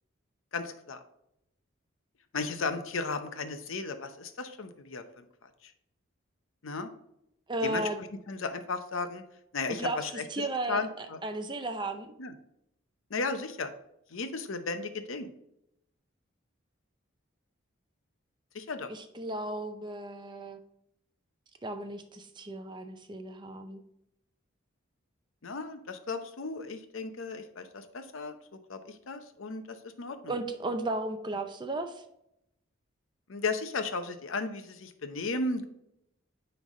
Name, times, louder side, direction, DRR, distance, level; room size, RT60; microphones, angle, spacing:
voice 1, 0.5-1.0 2.3-5.7 6.6-6.9 7.6-7.9 8.3-9.2 9.5-11.2 12.2-12.3 13.1-13.7 14.1-15.3 18.5-18.9 25.4-28.3 28.7-30.3 33.3-35.7, left 3 dB, 75° left, 8 dB, 0.7 m, -35 dB
voice 2, 7.5-8.0 9.7-10.0 10.3-12.1 18.9-20.6 21.6-23.8 30.3-32.0, right 2 dB, 20° right, 7 dB, 0.5 m, -35 dB
9.3 x 3.4 x 3.7 m, 0.79 s
head